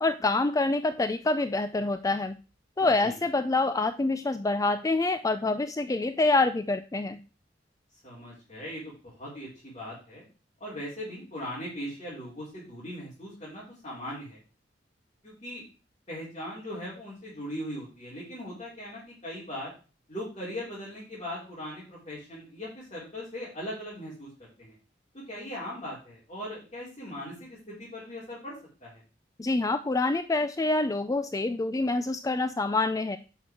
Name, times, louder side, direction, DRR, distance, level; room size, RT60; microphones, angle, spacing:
voice 1, 0.0-2.4 2.8-7.2 29.4-33.2, left 2 dB, 20° left, 11 dB, 0.4 m, -26 dB
voice 2, 2.8-3.2 8.0-10.2 10.6-14.4 15.2-15.6 16.1-19.7 20.1-24.8 25.1-28.6 28.8-29.0, equal, 35° left, -7 dB, 4.1 m, -39 dB
10.5 x 6.0 x 4.7 m, 0.35 s
head